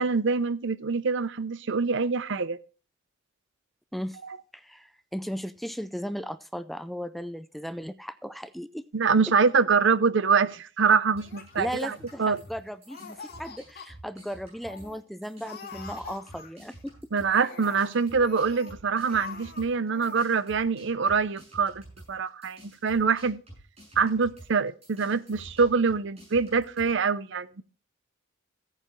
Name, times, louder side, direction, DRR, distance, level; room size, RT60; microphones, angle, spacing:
voice 1, 0.0-2.6 8.9-11.9 12.2-12.4 17.1-21.8 22.1-23.4 24.0-27.6, right 5 dB, 65° right, 0.6 m, -25 dB
voice 2, 4.5-8.8 11.6-16.9, equal, ahead, 0.4 m, -36 dB
sound 1, 11.1-15.0 15.2-26.9, right 1 dB, 30° right, 7.2 m, -50 dB
Laughter, 11.2-12.6 12.9-13.9 14.3-14.4 14.6-15.0 15.4-16.8 17.2-18.7 19.0-19.6 19.9-20.2, left 5 dB, 55° left, 2.2 m, -45 dB
16.0 x 9.1 x 3.1 m
head